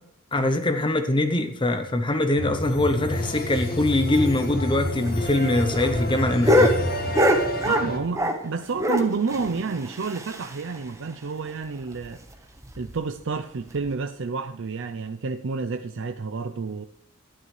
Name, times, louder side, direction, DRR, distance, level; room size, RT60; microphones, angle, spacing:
voice 1, 0.3-6.8, left 1 dB, 25° left, 0.7 m, -23 dB
sound 1, 2.4-8.0, equal, 45° left, 1.7 m, -29 dB
sound 2, 5.1-8.5 8.8-10.8 11.1-11.2 11.4-11.5 11.9-12.1 12.6-12.9 13.8-13.9, left 1 dB, 15° right, 1.2 m, -24 dB
voice 2, 7.6-12.2 12.8-16.9, right 4 dB, 60° right, 0.5 m, -30 dB
12.5 x 11.0 x 3.2 m
head